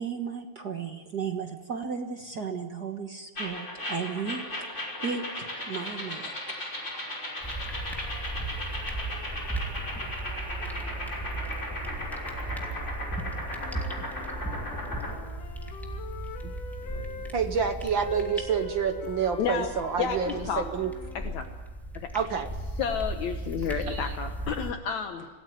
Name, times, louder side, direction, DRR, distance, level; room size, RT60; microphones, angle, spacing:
voice 1, 0.0-4.7 5.0-6.7, right 6 dB, 50° right, 5 dB, 1.3 m, -35 dB
sound 1, 3.4-15.2, left 1 dB, 20° left, 5.7 m, -36 dB
sound 2, 7.4-24.7, right 2 dB, ahead, 2.5 m, -37 dB
Wind instrument woodwind instrument, 13.4-17.3 18.0-21.6, left 5 dB, 90° left, 3.3 m, -44 dB
voice 2, 16.9-20.9 22.1-22.5 23.6-24.2, right 6 dB, 65° right, 7 dB, 1.1 m, -29 dB
voice 3, 19.4-19.7 20.0-20.6 21.3-21.5 21.9-22.1 22.8-25.3, left 7 dB, 65° left, 6 dB, 2.4 m, -31 dB
27.0 x 18.5 x 9.3 m, 1.5 s
omnidirectional pair, 3.6 m